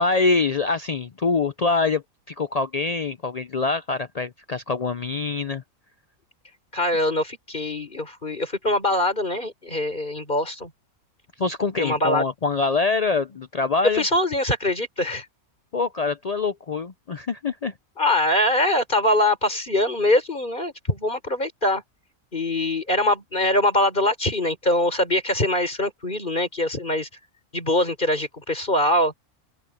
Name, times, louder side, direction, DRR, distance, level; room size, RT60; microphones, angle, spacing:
voice 1, 0.0-2.0 2.3-5.6 11.4-14.0 15.7-17.7, left 4 dB, 75° left, 0.3 m, -24 dB
voice 2, 6.7-10.7 11.8-12.2 13.9-15.3 18.0-21.8 22.3-27.1 27.5-29.1, left 1 dB, 35° left, 4.8 m, -23 dB
open air
omnidirectional pair, 1.5 m